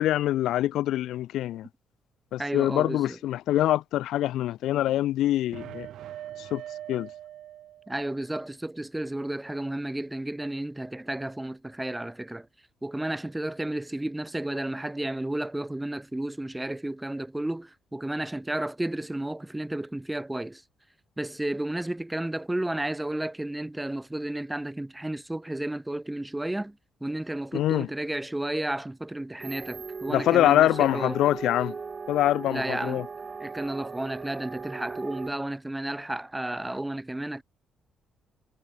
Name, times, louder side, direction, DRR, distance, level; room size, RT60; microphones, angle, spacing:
voice 1, 0.0-1.7 2.3-5.9 6.5-6.6 6.9-7.1 27.5-27.9 30.1-31.7 32.1-33.0, left 13 dB, 85° left, 1.2 m, -24 dB
voice 2, 2.4-3.2 7.9-12.5 12.8-20.6 21.2-26.8 27.0-31.2 32.4-33.1 33.4-37.4, right 1 dB, 10° right, 1.1 m, -32 dB
sound 1, 5.5-8.2, right 12 dB, 75° right, 3.2 m, -42 dB
sound 2, 29.4-35.3, right 5 dB, 35° right, 6.7 m, -38 dB
cardioid pair, 90°, 0 cm